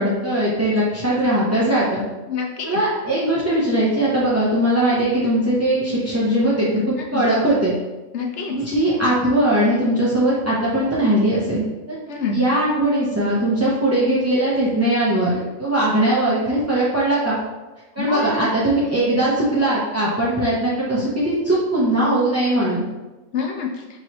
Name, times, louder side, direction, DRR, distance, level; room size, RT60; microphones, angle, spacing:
voice 1, 0.0-2.0 2.6-7.7 8.5-12.0 12.3-17.4 18.0-22.8, right 1 dB, 20° right, -9 dB, 0.4 m, -20 dB
voice 2, 2.3-2.8 7.1-7.2 8.1-8.5 12.1-12.4 18.0-18.5 23.3-23.8, left 5 dB, 65° left, 1 dB, 0.8 m, -26 dB
4.6 x 2.9 x 3.0 m, 1.1 s
omnidirectional pair, 1.4 m